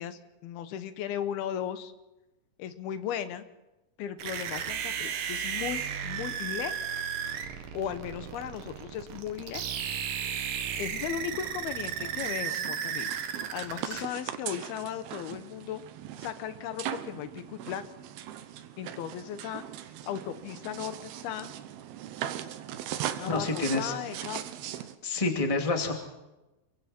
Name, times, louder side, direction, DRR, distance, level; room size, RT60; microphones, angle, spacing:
voice 1, 0.0-1.9 2.6-3.5 4.0-6.7 7.7-9.6 10.8-13.1 13.5-15.8 16.2-17.8 18.8-19.6 20.1-21.5 23.2-24.4, left 10 dB, 85° left, 11 dB, 3.0 m, -36 dB
sound 1, 4.2-14.0, right 8 dB, 65° right, 2.9 m, -34 dB
sound 2, 10.9-25.0, right 11 dB, 85° right, 3.0 m, -40 dB
voice 2, 23.3-23.9 25.0-25.9, left 3 dB, 10° left, 3 dB, 1.8 m, -28 dB
28.0 x 23.0 x 4.4 m, 1.0 s
omnidirectional pair, 4.4 m